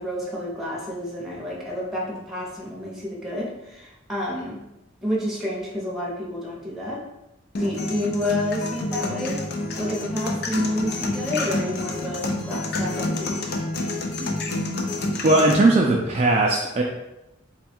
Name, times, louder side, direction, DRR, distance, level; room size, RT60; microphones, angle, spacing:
voice 1, 0.0-4.6 5.0-7.0 7.6-9.4 9.8-13.4, left 1 dB, ahead, -4 dB, 0.8 m, -29 dB
sound 1, 7.5-15.5, left 2 dB, 55° left, 0.5 m, -28 dB
voice 2, 15.2-16.8, right 2 dB, 30° right, -2 dB, 0.4 m, -18 dB
3.5 x 2.3 x 4.3 m, 0.92 s
head